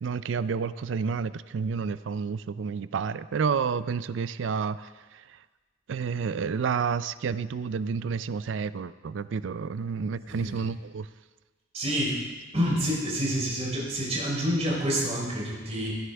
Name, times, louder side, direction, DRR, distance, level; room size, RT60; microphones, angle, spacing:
voice 1, 0.0-5.2 5.9-11.1, right 6 dB, 70° right, 15 dB, 0.4 m, -30 dB
voice 2, 10.3-10.6 11.7-12.2 12.5-15.9, equal, 35° right, -4 dB, 3.7 m, -28 dB
16.0 x 9.7 x 3.4 m, 1.3 s
head